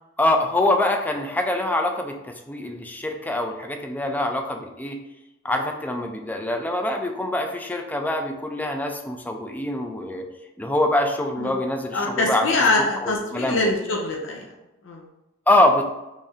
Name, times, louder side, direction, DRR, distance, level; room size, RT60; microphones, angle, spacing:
voice 1, 0.2-5.0 5.4-10.3 10.6-12.5 13.0-13.6 15.5-15.8, left 1 dB, 10° left, 4 dB, 0.3 m, -24 dB
voice 2, 11.9-14.4 14.8-15.1, left 2 dB, 80° left, 0 dB, 0.5 m, -24 dB
3.1 x 2.7 x 3.6 m, 0.97 s
head